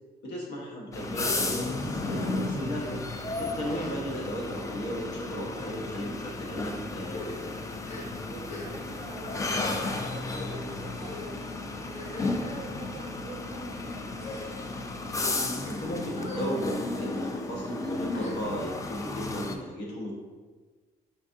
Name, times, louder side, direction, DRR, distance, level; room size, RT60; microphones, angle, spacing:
voice 1, 0.2-3.0 3.4-7.5 15.6-20.1, equal, 75° left, -2 dB, 1.3 m, -35 dB
sound 1, 0.9-19.6, left 2 dB, 20° left, 0.4 m, -33 dB
sound 2, 2.7-3.0 3.6-4.2 4.5-4.8 5.5-5.7 6.4-6.6 7.0-8.9 9.2-9.4 10.2-10.6 11.0-11.3 11.9-12.7 13.4-13.6 14.1-14.8 15.4-15.7 16.1-16.5 16.9-17.1 18.1-18.8, left 2 dB, 40° left, 0.8 m, -43 dB
voice 2, 7.9-14.4, right 3 dB, 40° right, 2 dB, 0.7 m, -46 dB
5.1 x 3.5 x 2.7 m, 1.4 s
cardioid pair, 110°, 17 cm